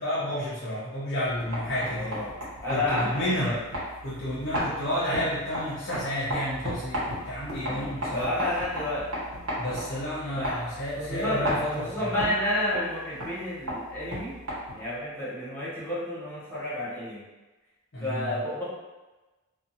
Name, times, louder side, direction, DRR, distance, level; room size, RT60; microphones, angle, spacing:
voice 1, 0.0-2.2 2.7-3.6 4.0-8.3 9.6-12.1 17.9-18.4, equal, 55° left, -9 dB, 0.7 m, -31 dB
sound 1, 1.2-15.0, equal, 75° right, 1.1 m, -35 dB
voice 2, 1.8-2.3 2.6-3.6 7.6-9.1 10.3-10.6 11.0-14.4 14.7-17.2 18.0-18.6, left 1 dB, 10° left, -9 dB, 0.9 m, -31 dB
2.5 x 2.5 x 2.7 m, 1.1 s
head